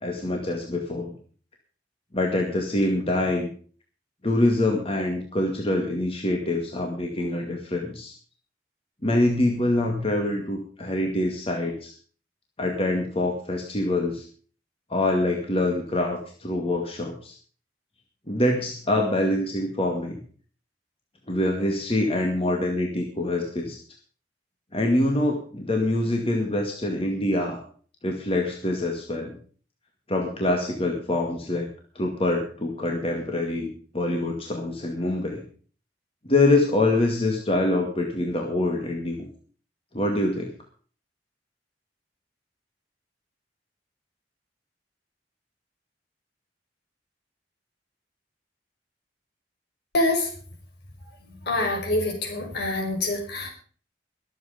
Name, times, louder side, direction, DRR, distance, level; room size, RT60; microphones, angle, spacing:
voice 1, 0.0-1.1 2.1-3.5 4.2-8.1 9.0-11.9 12.6-14.2 14.9-17.3 18.3-20.2 21.3-23.8 24.7-27.6 28.0-29.3 30.1-31.7 32.0-35.4 36.3-39.3 39.9-40.5, left 1 dB, 35° left, 2 dB, 2.3 m, -25 dB
voice 2, 49.9-50.3 51.5-53.5, left 2 dB, 65° left, 2 dB, 5.5 m, -25 dB
22.5 x 8.0 x 5.2 m, 0.43 s
head